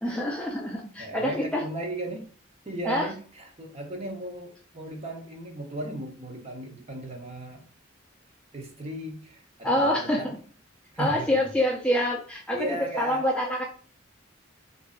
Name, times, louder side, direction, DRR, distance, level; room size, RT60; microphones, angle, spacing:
voice 1, 0.0-1.6 2.9-3.1 9.6-10.2 11.0-13.6, left 1 dB, 5° left, -1 dB, 0.4 m, -26 dB
voice 2, 1.0-2.2 2.7-7.6 8.5-10.3 10.9-11.3 12.5-13.3, right 1 dB, 30° right, 1 dB, 0.8 m, -36 dB
3.0 x 2.6 x 3.7 m, 0.43 s
head